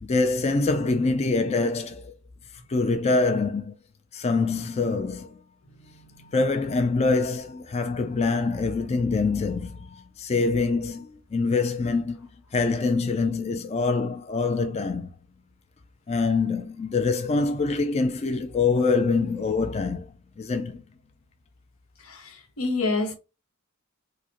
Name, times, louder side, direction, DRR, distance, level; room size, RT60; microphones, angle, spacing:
voice 1, 0.0-2.1 2.7-3.7 4.1-5.4 6.3-15.1 16.1-20.8, left 3 dB, 30° left, 0.4 m, -25 dB
voice 2, 22.0-23.1, left 3 dB, 90° left, 1.2 m, -28 dB
4.8 x 2.1 x 2.9 m
head